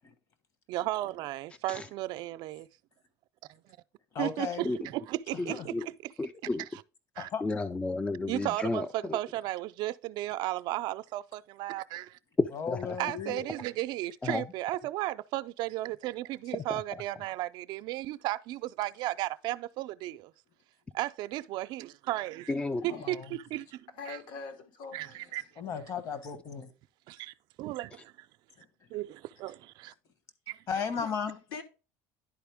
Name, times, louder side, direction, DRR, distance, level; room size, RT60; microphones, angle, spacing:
voice 1, 0.7-2.7 4.2-6.1 6.6-6.8 7.2-7.3 8.3-12.2 13.0-20.3 20.9-22.6 22.8-24.2 24.9-25.4 27.1-28.1 28.9-29.9 30.5-30.6, right 16 dB, 60° right, 0.4 m, -35 dB
voice 2, 4.1-4.7 5.5-5.7 7.2-7.4 12.5-13.5 22.9-23.3 25.6-26.7 30.7-31.3, left 6 dB, 45° left, 1.2 m, -35 dB
voice 3, 5.4-5.9 6.2-6.7 7.4-9.2 12.4-13.0 14.2-14.4 16.6-16.8 22.5-22.9, left 2 dB, 15° left, 0.3 m, -32 dB
voice 4, 22.8-23.1 24.0-25.4 30.8-31.6, left 4 dB, 70° left, 1.5 m, -44 dB
10.5 x 4.2 x 3.5 m
cardioid pair, 120°, 8 cm